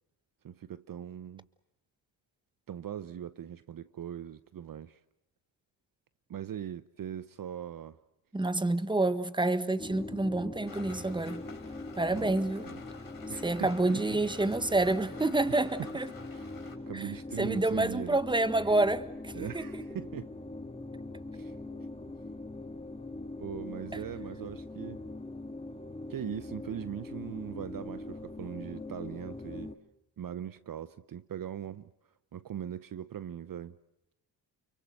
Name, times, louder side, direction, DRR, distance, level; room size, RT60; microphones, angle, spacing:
voice 1, 0.4-1.5 2.7-5.0 6.3-8.0 12.1-12.4 12.7-12.8 13.3-14.4 15.5-15.9 16.3-18.2 19.3-20.3 21.3-21.5 23.4-25.0 26.1-29.7 30.2-31.9 32.3-33.8, right 9 dB, 50° right, 0.8 m, -40 dB
voice 2, 8.3-11.4 11.9-12.7 13.4-16.1 16.9-17.0 17.4-19.7, right 2 dB, 10° right, 1.4 m, -28 dB
sound 1, 9.8-29.8, left 2 dB, 15° left, 2.0 m, -42 dB
Rain, 10.7-16.8, left 5 dB, 50° left, 5.8 m, -51 dB
29.5 x 23.0 x 6.5 m
cardioid pair, 70°, 43 cm